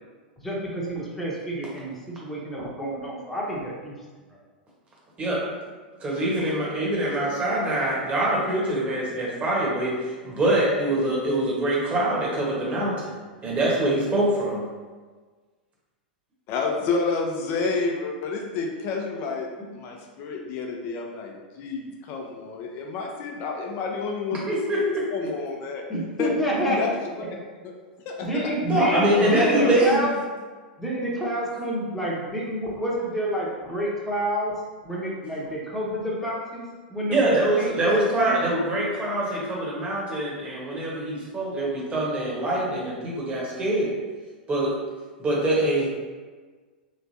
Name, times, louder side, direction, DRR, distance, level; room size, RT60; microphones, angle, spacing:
voice 1, 0.4-3.9 25.9-26.8 28.2-30.1 30.8-34.5 34.8-38.4, right 1 dB, 5° left, -6 dB, 1.0 m, -28 dB
voice 2, 6.0-13.1 13.4-14.6 24.3-24.8 28.7-30.0 37.1-44.0 44.5-44.7 45.2-45.9, right 1 dB, 25° right, -4 dB, 1.2 m, -24 dB
voice 3, 16.5-19.5 19.7-24.8 25.1-25.8 26.2-26.3 26.7-26.9 28.0-28.5 29.1-29.8, left 4 dB, 45° left, 1 dB, 0.7 m, -29 dB
3.3 x 3.2 x 2.7 m, 1.4 s
hypercardioid pair, 100°, 5 cm